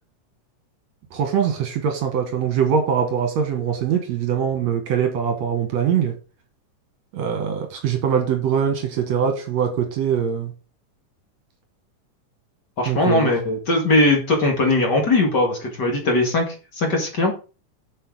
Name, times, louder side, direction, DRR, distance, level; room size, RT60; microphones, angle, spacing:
voice 1, 1.1-6.2 7.1-10.5 12.9-13.3, right 7 dB, 65° right, 5 dB, 2.5 m, -22 dB
voice 2, 12.8-17.3, left 2 dB, 35° left, 2 dB, 2.3 m, -20 dB
7.7 x 6.7 x 4.8 m, 0.34 s
omnidirectional pair, 3.7 m